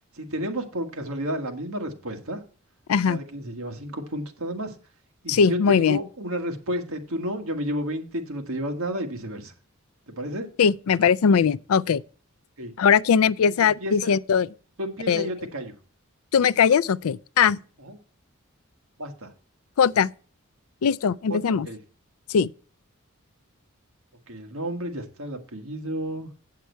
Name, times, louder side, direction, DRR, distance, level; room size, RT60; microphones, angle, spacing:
voice 1, 0.2-2.4 3.1-4.7 5.2-9.5 10.2-10.5 12.6-12.7 13.4-14.1 14.8-15.7 17.8-17.9 19.0-19.3 21.5-21.8 24.3-26.3, equal, 75° right, 1.7 m, -31 dB
voice 2, 5.3-6.0 10.6-12.0 12.8-14.5 15.1-15.3 16.3-17.6 19.8-20.1 20.8-21.7 22.3-22.5, left 6 dB, 80° left, 0.4 m, -20 dB
8.2 x 7.5 x 4.5 m
head